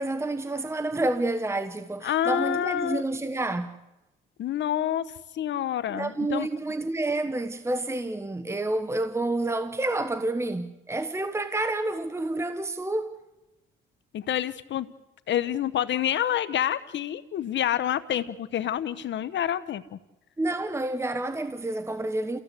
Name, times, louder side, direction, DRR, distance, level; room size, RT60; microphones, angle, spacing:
voice 1, 0.0-3.8 5.9-13.1 20.4-22.4, right 2 dB, 15° right, 1.2 m, -29 dB
voice 2, 2.0-3.0 4.4-5.0 5.3-6.5 14.1-14.9 15.3-20.0, left 10 dB, 65° left, 1.1 m, -28 dB
30.0 x 16.0 x 8.4 m
cardioid pair, 90°, 20 cm